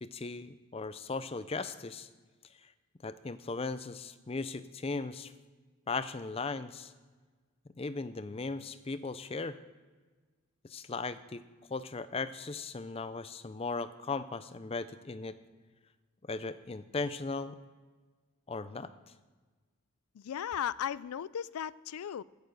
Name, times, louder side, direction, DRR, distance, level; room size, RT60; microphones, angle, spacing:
voice 1, 0.0-2.1 2.6-2.7 3.0-5.3 5.9-6.9 7.8-9.6 10.6-11.4 11.7-15.3 16.2-17.6 18.5-18.9, left 3 dB, 25° left, 0.5 m, -37 dB
voice 2, 20.1-22.2, left 9 dB, 85° left, 0.4 m, -36 dB
16.0 x 6.8 x 6.6 m
head